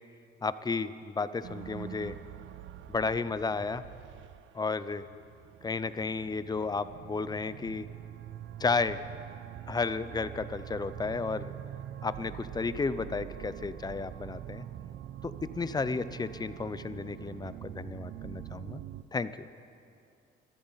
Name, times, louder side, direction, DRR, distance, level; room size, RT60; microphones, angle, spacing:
voice 1, 0.4-2.1 2.9-3.8 4.5-5.0 5.6-7.9 8.6-9.0 9.7-11.5 12.0-14.6 15.6-18.8 19.1-19.3, left 4 dB, 20° left, 14 dB, 0.5 m, -32 dB
sound 1, 1.4-19.0, right 11 dB, 65° right, 0.5 m, -45 dB
23.0 x 14.0 x 4.0 m, 2.5 s
cardioid pair, 100°, 21 cm